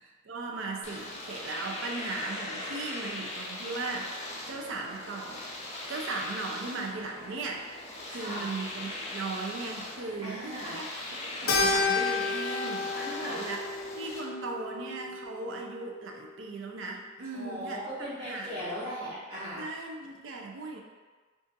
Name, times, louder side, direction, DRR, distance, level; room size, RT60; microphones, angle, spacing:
voice 1, 0.2-4.2 4.5-5.4 5.9-10.9 11.4-12.9 13.3-13.6 14.0-18.7 19.6-20.8, right 3 dB, 65° right, 1 dB, 0.4 m, -37 dB
Domestic sounds home sounds, 0.8-14.2, left 1 dB, 30° left, 0.5 m, -40 dB
voice 2, 8.1-8.5 10.2-10.8 12.9-13.4 17.3-19.7, equal, 25° right, -13 dB, 0.8 m, -38 dB
Keyboard (musical), 11.5-16.1, left 3 dB, 80° left, 0.5 m, -31 dB
2.5 x 2.4 x 3.8 m, 1.4 s
head